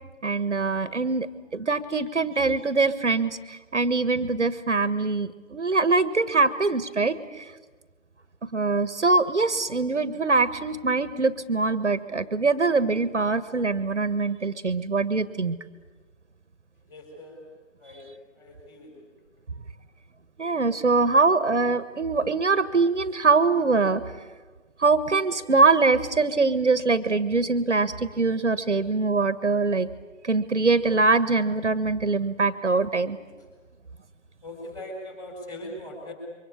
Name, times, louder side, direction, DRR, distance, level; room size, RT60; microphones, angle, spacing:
voice 1, 0.2-1.3 1.5-7.5 8.4-15.6 20.4-24.0 24.8-29.9 30.2-33.2, right 3 dB, 60° right, 14 dB, 1.6 m, -23 dB
voice 2, 16.9-17.4 17.8-18.0 18.4-18.9 34.4-36.1, left 1 dB, 10° left, 1 dB, 4.4 m, -40 dB
28.0 x 24.0 x 8.7 m, 1.3 s
figure-of-eight pair, 155°, 39 cm